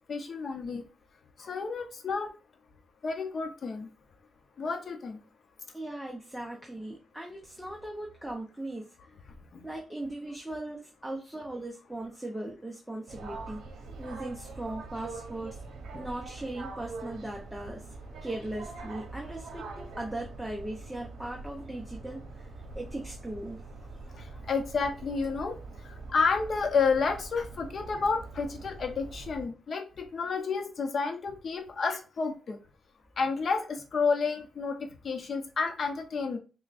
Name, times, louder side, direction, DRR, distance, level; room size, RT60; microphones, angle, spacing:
voice 1, 0.1-0.9 1.4-2.3 3.0-3.9 4.6-5.2 9.5-9.6 24.1-25.6 25.8-32.6 33.2-36.4, left 4 dB, 50° left, 6 dB, 0.7 m, -30 dB
voice 2, 5.7-8.9 9.6-13.6 14.0-15.6 15.9-17.9 18.2-22.5 22.7-23.6, right 1 dB, 5° right, 0 dB, 0.6 m, -38 dB
sound 1, 13.1-29.4, right 3 dB, 75° right, 0.8 m, -44 dB
6.0 x 2.2 x 2.5 m, 0.33 s
cardioid pair, 115°, 0 cm